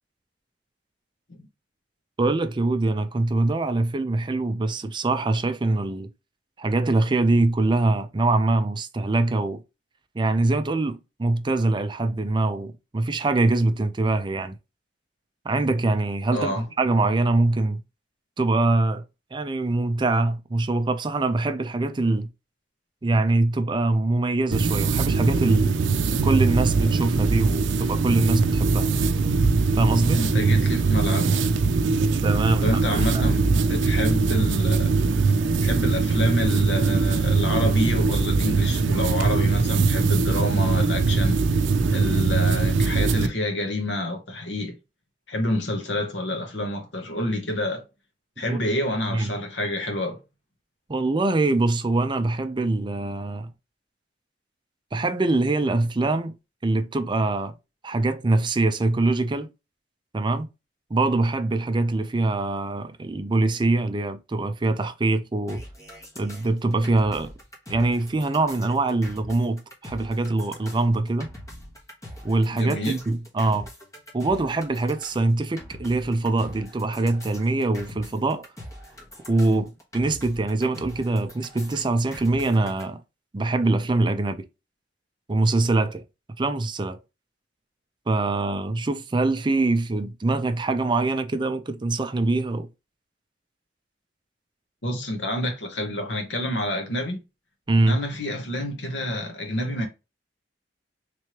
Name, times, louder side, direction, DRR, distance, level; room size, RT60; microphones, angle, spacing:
voice 1, 2.2-6.1 6.6-9.6 10.1-14.6 15.4-17.8 18.4-19.0 19.3-22.3 23.0-25.7 26.2-28.9 29.8-30.2 32.0-33.4 48.4-48.6 49.1-49.3 50.9-53.5 54.9-56.4 56.6-57.5 57.8-59.5 60.1-60.5 60.9-65.6 66.2-67.3 67.7-71.3 72.2-73.7 74.1-78.5 79.3-83.0 83.3-84.4 85.3-86.0 86.4-87.0 88.1-92.7 97.7-98.0, right 2 dB, 25° right, 0.4 m, -23 dB
voice 2, 16.3-16.7 30.1-31.4 32.6-34.9 35.6-41.4 41.9-44.8 45.3-47.8 48.4-50.2 72.5-73.0 94.8-97.2 97.8-99.9, left 1 dB, 75° left, 1.1 m, -28 dB
sound 1, 24.5-43.3, right 4 dB, 90° right, 0.4 m, -21 dB
sound 2, 65.5-82.8, left 1 dB, 20° left, 1.1 m, -43 dB
3.3 x 3.1 x 2.9 m
head